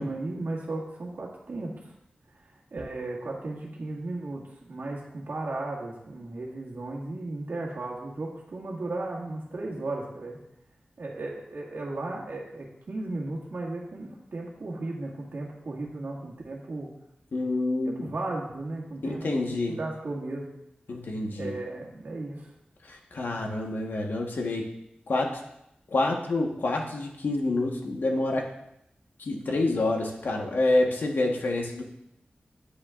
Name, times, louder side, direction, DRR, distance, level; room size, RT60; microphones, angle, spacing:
voice 1, 0.0-1.9 2.4-10.4 11.0-16.9 17.8-19.5 19.8-20.5 21.4-22.5, right 2 dB, 70° right, -3 dB, 1.9 m, -35 dB
voice 2, 17.3-18.0 19.0-19.8 20.9-21.5 22.8-24.7 25.1-25.3 25.9-28.5 29.2-31.8, left 2 dB, 80° left, 1 dB, 1.2 m, -27 dB
9.7 x 8.6 x 2.5 m, 0.82 s
wide cardioid pair, 105°, 3 cm